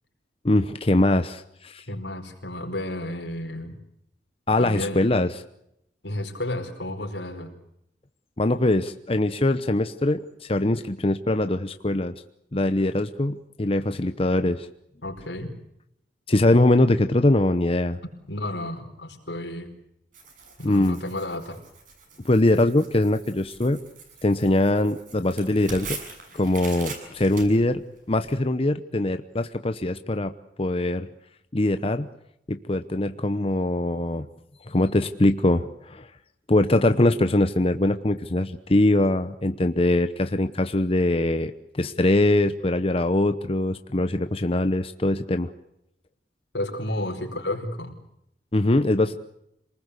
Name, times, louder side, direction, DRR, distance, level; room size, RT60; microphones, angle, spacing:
voice 1, 0.4-1.8 4.5-5.4 8.4-12.1 12.5-14.7 16.3-18.0 20.6-21.0 22.2-23.8 24.2-26.0 26.3-27.8 28.1-30.3 30.6-31.1 31.5-32.1 32.5-34.3 34.7-36.1 36.5-45.5 48.5-49.2, left 1 dB, 35° left, 9 dB, 0.9 m, -22 dB
voice 2, 1.9-3.8 4.6-5.1 6.0-7.5 15.0-15.5 18.3-19.7 20.6-21.6 46.5-47.9, left 1 dB, 85° left, 4 dB, 4.8 m, -32 dB
Tearing, 20.1-28.3, right 4 dB, 50° right, 6.9 m, -42 dB
27.5 x 20.0 x 8.3 m, 0.80 s
head